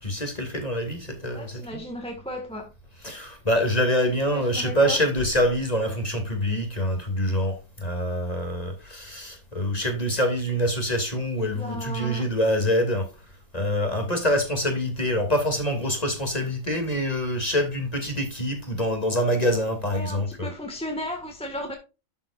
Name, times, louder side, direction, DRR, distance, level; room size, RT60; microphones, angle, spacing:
voice 1, 0.0-1.8 3.0-13.1 13.5-20.5, equal, 25° left, 2.8 m, -25 dB
voice 2, 1.2-2.7 4.2-5.0 11.4-12.3 19.9-21.7, equal, 5° left, 1.7 m, -35 dB
12.5 x 7.8 x 2.5 m
omnidirectional pair, 1.7 m